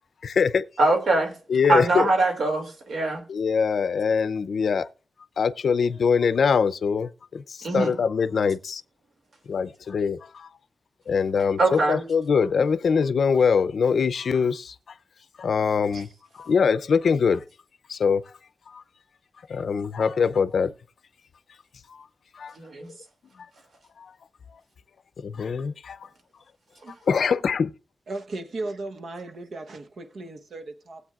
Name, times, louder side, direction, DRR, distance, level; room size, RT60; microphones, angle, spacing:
voice 1, 0.2-0.7 1.5-2.1 3.3-4.9 5.4-8.8 9.5-10.5 11.1-14.7 15.4-16.1 16.3-17.4 17.9-18.2 18.7-18.8 19.5-20.7 21.9-22.0 22.3-22.5 24.0-24.1 24.5-24.6 25.2-26.1 26.9-27.7, left 6 dB, 75° left, 0.5 m, -23 dB
voice 2, 0.8-1.4 1.7-3.2 7.6-7.9 11.6-12.1 15.9-16.0 22.5-22.9 26.8-26.9, right 2 dB, 90° right, 2.5 m, -23 dB
voice 3, 28.1-31.0, right 2 dB, 70° right, 1.0 m, -36 dB
20.0 x 8.1 x 2.4 m
wide cardioid pair, 160°, 0 cm